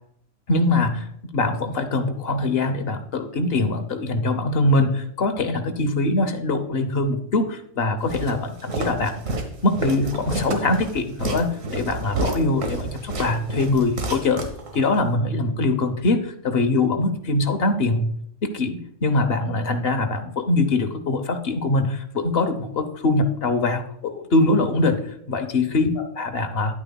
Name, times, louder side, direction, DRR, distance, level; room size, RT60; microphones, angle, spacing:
voice 1, 0.5-9.2 9.6-14.4 14.7-18.1 18.4-25.0 25.3-26.8, left 2 dB, 55° left, 7 dB, 1.1 m, -23 dB
Walk footsteps, 8.1-15.0, right 2 dB, 80° right, 1.7 m, -30 dB
10.5 x 8.7 x 2.3 m, 0.71 s
omnidirectional pair, 1.3 m